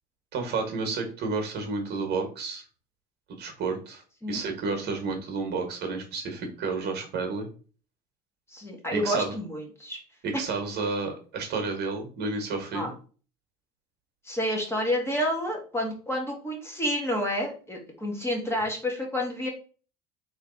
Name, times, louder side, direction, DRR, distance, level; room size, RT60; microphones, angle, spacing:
voice 1, 0.3-2.6 3.3-4.0 4.3-7.5 8.9-9.3 10.2-12.9, right 4 dB, 55° right, 4 dB, 1.4 m, -31 dB
voice 2, 8.5-10.0 12.7-12.9 14.2-19.5, equal, 10° left, 0 dB, 1.5 m, -29 dB
3.2 x 3.2 x 3.9 m, 0.38 s
supercardioid pair, 85°, 21 cm